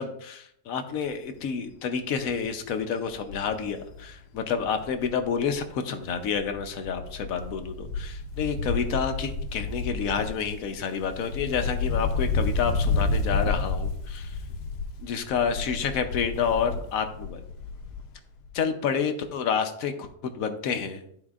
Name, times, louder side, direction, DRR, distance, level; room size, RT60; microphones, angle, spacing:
voice 1, 0.0-14.4 15.0-17.4 18.5-21.0, left 6 dB, 65° left, 7 dB, 1.0 m, -29 dB
Wind, 1.1-1.4 1.8-1.9 2.2-5.7 6.0-18.2 18.4-18.5, left 3 dB, 85° left, 1.3 m, -31 dB
12.0 x 4.3 x 2.4 m, 0.71 s
omnidirectional pair, 1.7 m